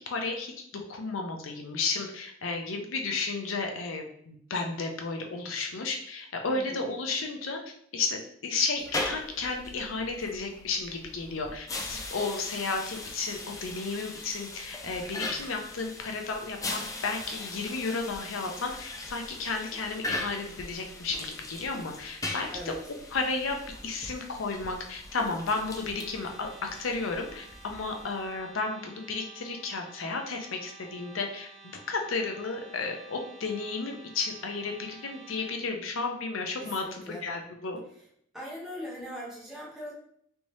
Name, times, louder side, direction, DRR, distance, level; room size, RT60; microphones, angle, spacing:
voice 1, 0.1-7.6 7.9-22.5 23.1-23.6 23.8-31.5 31.9-37.8, left 4 dB, 90° left, 3 dB, 0.6 m, -33 dB
voice 2, 6.5-6.9 22.5-22.8 36.6-37.3 38.3-39.9, equal, ahead, -7 dB, 1.1 m, -40 dB
sound 1, 8.8-28.4, left 2 dB, 15° left, 0.4 m, -40 dB
sound 2, 25.5-35.6, right 4 dB, 30° right, 0.8 m, -52 dB
3.4 x 2.7 x 3.0 m, 0.69 s
head